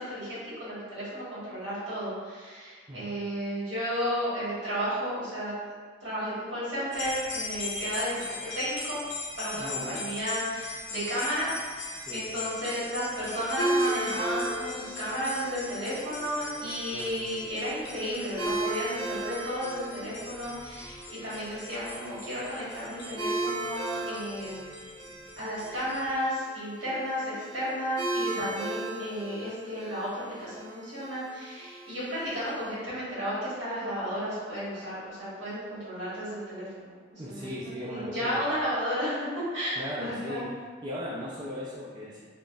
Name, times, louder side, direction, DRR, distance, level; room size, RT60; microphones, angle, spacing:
voice 1, 0.0-5.5 6.0-9.0 9.4-24.8 25.4-40.4, equal, 75° right, -10 dB, 1.4 m, -33 dB
sound 1, 6.9-26.1, left 3 dB, 70° left, 0.6 m, -40 dB
voice 2, 9.5-10.0 12.0-12.3 16.9-17.2 25.1-25.2 37.2-38.4 39.8-40.5 40.8-42.2, equal, 25° right, -7 dB, 0.4 m, -38 dB
sound 2, 13.6-32.7, right 2 dB, 55° right, 1.1 m, -36 dB
3.5 x 2.0 x 2.5 m, 1.5 s
head